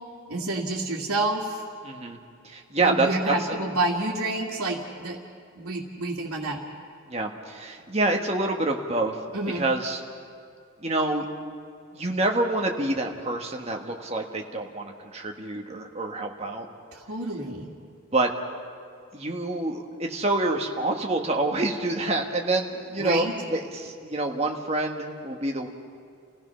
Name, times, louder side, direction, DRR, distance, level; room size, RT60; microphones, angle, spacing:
voice 1, 0.3-1.6 2.8-5.2 5.6-6.6 9.3-9.7 16.9-17.7 23.0-23.3, right 2 dB, 80° right, -6 dB, 2.2 m, -28 dB
voice 2, 1.8-2.2 2.4-3.6 7.1-9.2 9.5-10.0 10.8-11.2 11.9-16.7 18.1-18.3 19.1-25.7, right 2 dB, 30° right, 2 dB, 1.5 m, -27 dB
29.5 x 16.0 x 5.7 m, 2.3 s
head